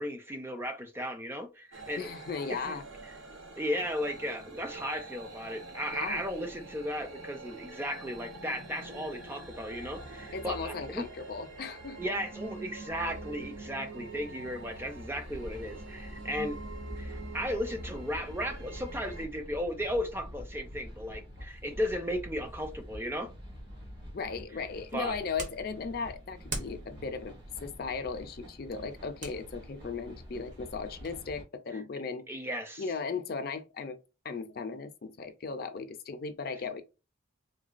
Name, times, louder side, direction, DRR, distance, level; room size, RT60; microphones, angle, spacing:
voice 1, 0.0-2.1 2.5-2.8 3.6-11.1 12.0-16.6 17.0-23.3 24.9-25.1 31.7-31.8 32.3-32.8, equal, 10° right, 0.4 m, -35 dB
sound 1, 1.7-19.3, right 2 dB, 85° right, 0.8 m, -45 dB
voice 2, 2.0-2.8 5.9-6.2 10.3-12.0 24.1-27.3 27.6-32.4 32.8-34.0 34.2-36.8, left 5 dB, 50° left, 0.4 m, -37 dB
sound 2, 15.2-31.4, equal, 60° right, 1.4 m, -47 dB
sound 3, 24.5-31.2, right 2 dB, 40° right, 0.8 m, -46 dB
3.8 x 2.2 x 2.4 m
head